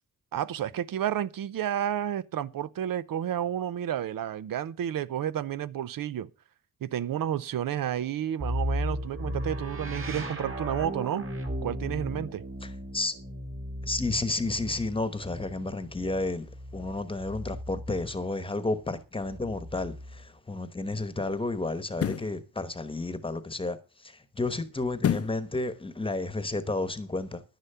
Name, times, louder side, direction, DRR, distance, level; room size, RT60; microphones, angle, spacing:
voice 1, 0.3-6.3 6.8-11.2 11.6-12.4, right 10 dB, 75° right, 0.7 m, -31 dB
sound 1, 8.4-18.2 19.2-20.3, equal, 35° right, 2.5 m, -36 dB
voice 2, 12.6-13.1 13.8-16.5 16.7-23.8 24.0-27.4, left 2 dB, 15° left, 1.1 m, -31 dB
sound 2, 20.0-20.2 21.9-22.4 25.0-25.5 25.9-26.0, left 8 dB, 45° left, 0.6 m, -28 dB
11.0 x 10.5 x 5.6 m
wide cardioid pair, 175°, 34 cm